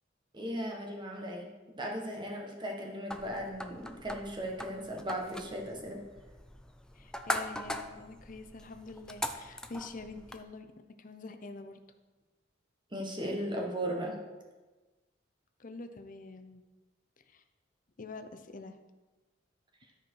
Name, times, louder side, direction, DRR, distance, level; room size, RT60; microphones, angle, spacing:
voice 1, 0.3-1.5 1.8-6.1 12.9-14.1, equal, 25° right, 1 dB, 1.4 m, -37 dB
sound 1, 3.1-10.4, left 1 dB, 5° left, 0.4 m, -41 dB
voice 2, 6.9-10.7 11.0-11.8 15.6-16.6 17.3-17.4 18.0-18.8, left 3 dB, 45° left, 8 dB, 0.7 m, -45 dB
13.0 x 4.5 x 4.7 m, 1.2 s
head